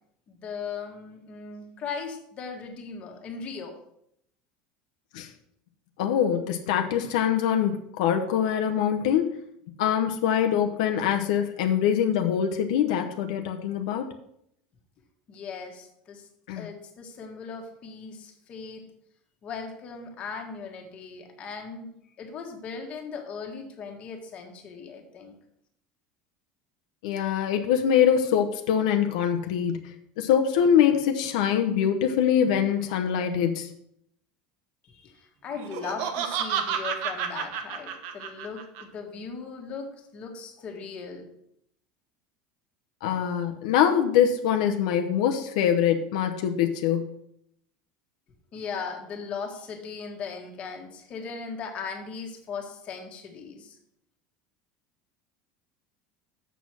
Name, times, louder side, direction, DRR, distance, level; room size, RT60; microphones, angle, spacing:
voice 1, 0.3-3.8 15.3-16.3 16.6-18.9 19.4-21.9 22.2-25.4 34.8-41.3 48.5-53.8, left 5 dB, 35° left, 2 dB, 1.6 m, -38 dB
voice 2, 6.0-9.4 9.8-14.1 16.5-16.6 27.0-33.7 43.0-47.1, left 9 dB, 85° left, 4 dB, 0.8 m, -24 dB
Laughter, 35.6-38.8, right 7 dB, 60° right, 1.1 m, -30 dB
6.9 x 6.3 x 6.1 m, 0.74 s
cardioid pair, 160°, 4 cm